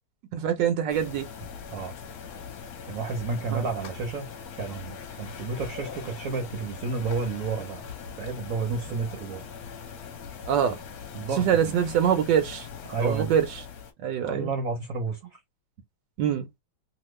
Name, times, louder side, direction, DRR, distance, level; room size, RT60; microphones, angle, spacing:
voice 1, 0.3-1.3 3.5-3.6 10.5-10.8 11.4-12.7 13.0-13.4 14.0-14.5 16.2-16.5, right 9 dB, 80° right, 1.3 m, -24 dB
sound 1, 0.9-13.9, left 6 dB, 65° left, 1.1 m, -41 dB
voice 2, 2.9-4.3 4.6-7.8 8.2-9.5 11.1-11.7 12.9-13.3 14.2-15.4, right 4 dB, 60° right, 1.0 m, -31 dB
2.9 x 2.4 x 3.1 m
omnidirectional pair, 2.0 m